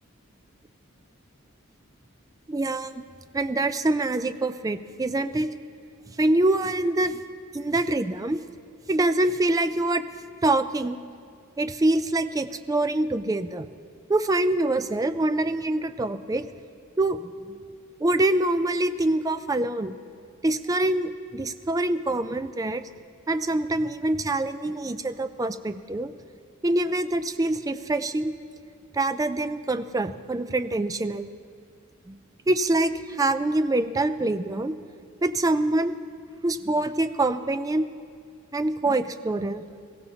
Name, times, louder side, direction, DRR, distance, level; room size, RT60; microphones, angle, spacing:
voice 1, 2.5-3.0 3.3-5.5 6.2-7.2 7.5-8.4 8.9-10.0 10.4-11.0 11.6-13.6 14.1-16.5 17.0-17.6 18.0-20.0 20.4-22.8 23.3-26.1 26.6-28.3 28.9-31.3 32.1-32.2 32.5-34.7 35.2-36.0 36.4-37.9 38.5-39.6, right 2 dB, 15° right, 10 dB, 0.3 m, -25 dB
22.0 x 15.5 x 2.8 m, 2.2 s
head